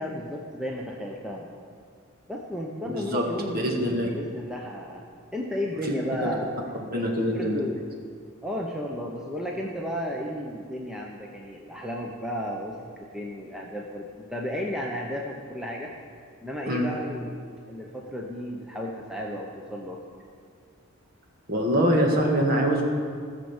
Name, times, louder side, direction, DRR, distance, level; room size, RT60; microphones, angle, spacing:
voice 1, 0.0-1.5 2.3-3.7 4.1-5.0 5.3-6.8 7.2-7.9 8.4-15.9 16.4-17.4 17.7-20.0, equal, 5° right, -2 dB, 0.8 m, -33 dB
voice 2, 2.9-3.2 3.5-4.1 5.8-5.9 6.2-6.3 6.9-7.6 16.7-16.9 21.5-22.9, equal, 45° right, 0 dB, 1.8 m, -24 dB
15.0 x 6.5 x 7.2 m, 2.1 s
head